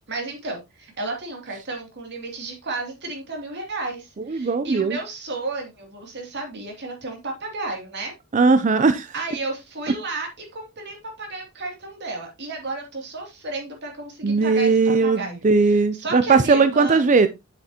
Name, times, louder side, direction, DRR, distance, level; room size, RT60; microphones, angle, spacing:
voice 1, 0.1-8.1 9.1-17.0, right 3 dB, 55° right, 2 dB, 2.6 m, -33 dB
voice 2, 4.3-5.0 8.3-9.1 14.2-17.3, right 4 dB, 35° right, 11 dB, 0.5 m, -18 dB
7.7 x 7.6 x 2.8 m, 0.22 s
head